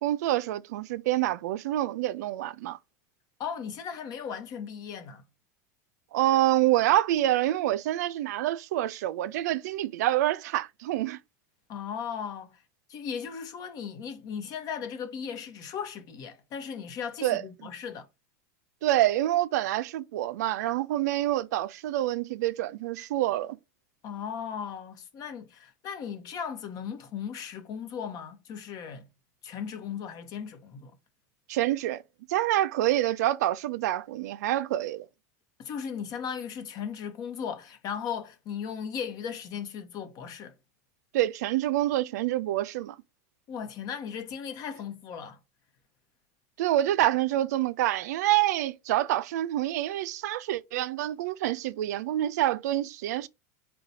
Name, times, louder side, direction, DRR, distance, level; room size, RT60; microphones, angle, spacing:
voice 1, 0.0-2.8 6.1-11.2 17.2-17.4 18.8-23.6 31.5-32.0 32.3-35.1 41.1-43.0 46.6-53.3, right 14 dB, 80° right, 0.3 m, -27 dB
voice 2, 3.4-5.2 11.7-12.6 12.9-18.1 24.0-29.1 29.4-31.0 35.6-40.5 43.5-45.4, left 7 dB, 45° left, 0.9 m, -37 dB
4.0 x 2.3 x 3.9 m
supercardioid pair, 120°, 9 cm